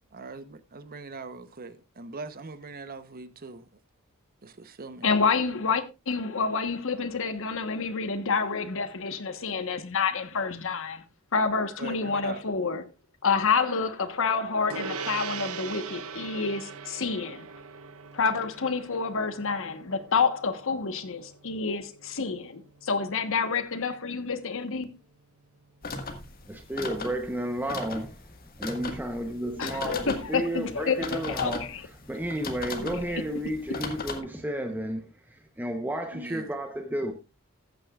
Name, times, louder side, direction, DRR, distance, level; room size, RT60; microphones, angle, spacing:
voice 1, 0.1-3.7 4.4-5.1 11.8-12.4 36.1-36.5, right 3 dB, 45° right, 0.9 m, -41 dB
voice 2, 5.0-11.0 11.3-12.8 13.2-17.5 18.1-24.9 29.6-31.9 32.8-33.2, left 5 dB, 65° left, 1.2 m, -28 dB
Gong, 14.7-24.4, right 5 dB, 75° right, 0.9 m, -41 dB
sound 1, 25.8-34.2, left 3 dB, 45° left, 1.7 m, -38 dB
voice 3, 26.5-28.1 28.6-31.7 32.1-35.1 35.6-37.1, right 1 dB, 10° right, 0.9 m, -32 dB
14.0 x 9.1 x 2.4 m
head